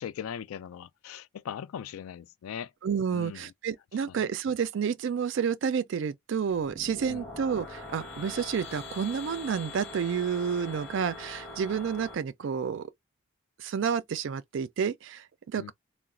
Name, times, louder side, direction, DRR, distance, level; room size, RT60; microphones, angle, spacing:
voice 1, 0.0-2.7 3.1-3.4 4.2-4.3 7.1-7.3 15.6-15.7, left 8 dB, 80° left, 0.3 m, -39 dB
voice 2, 2.8-12.9 13.6-15.7, right 7 dB, 60° right, 0.3 m, -30 dB
sound 1, 6.5-12.1, left 3 dB, 5° left, 1.1 m, -43 dB
3.8 x 2.1 x 2.4 m
head